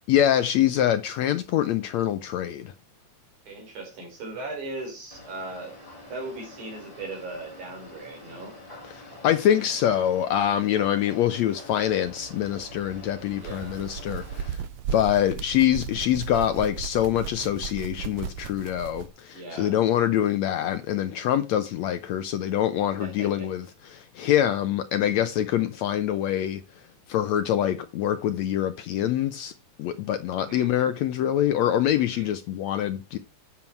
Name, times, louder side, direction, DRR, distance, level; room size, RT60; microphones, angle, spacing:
voice 1, 0.1-2.7 8.9-14.6 14.9-23.7 23.9-26.6 27.1-29.5 29.8-33.2, left 11 dB, 75° left, 1.8 m, -25 dB
voice 2, 3.5-5.8 6.1-8.6 13.4-13.7 19.3-19.7 23.0-23.5 30.4-30.7 32.1-32.3, right 2 dB, 65° right, 5.7 m, -38 dB
sound 1, 5.1-14.5, left 2 dB, 10° left, 4.4 m, -46 dB
sound 2, 11.8-19.1, right 8 dB, 80° right, 1.4 m, -36 dB
11.0 x 7.6 x 4.5 m
omnidirectional pair, 3.7 m